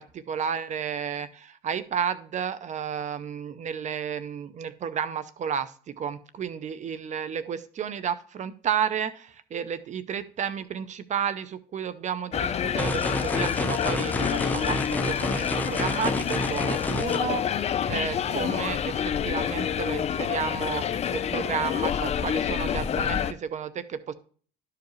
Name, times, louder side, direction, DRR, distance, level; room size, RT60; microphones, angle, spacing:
voice 1, 0.0-24.1, right 7 dB, 45° right, 14 dB, 0.6 m, -32 dB
sound 1, 12.3-23.3, left 8 dB, 40° left, 0.5 m, -28 dB
sound 2, 12.8-17.2, left 1 dB, 10° left, 0.8 m, -30 dB
11.5 x 4.8 x 3.0 m, 0.43 s
cardioid pair, 110°, 17 cm